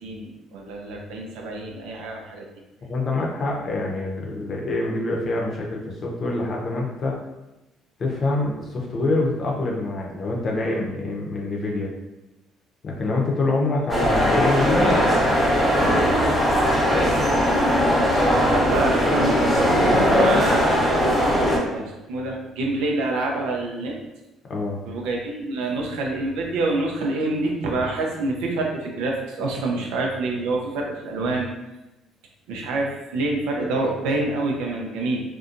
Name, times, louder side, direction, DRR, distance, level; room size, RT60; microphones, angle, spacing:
voice 1, 0.0-2.5 18.3-21.0 21.7-24.0 24.9-31.5 32.5-35.2, right 2 dB, 75° right, 0 dB, 0.5 m, -27 dB
voice 2, 2.8-7.1 8.0-11.9 12.8-16.1 16.7-17.2 24.5-24.8, left 2 dB, 45° left, -1 dB, 0.7 m, -26 dB
sound 1, 13.9-21.6, equal, 5° right, 0.9 m, -19 dB
2.6 x 2.2 x 2.5 m, 0.98 s
hypercardioid pair, 60°, 0 cm